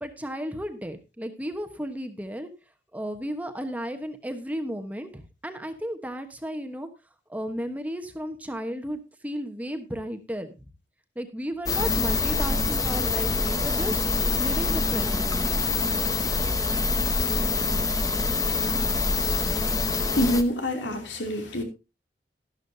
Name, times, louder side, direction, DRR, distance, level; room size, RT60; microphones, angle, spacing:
voice 1, 0.0-2.5 2.9-6.9 7.3-10.7 11.1-14.0 14.4-15.7, equal, 10° right, 1.1 m, -34 dB
sound 1, 11.7-20.4, left 3 dB, 20° left, 0.9 m, -25 dB
voice 2, 20.1-21.6, left 1 dB, 90° left, 2.9 m, -26 dB
12.5 x 12.0 x 2.7 m
head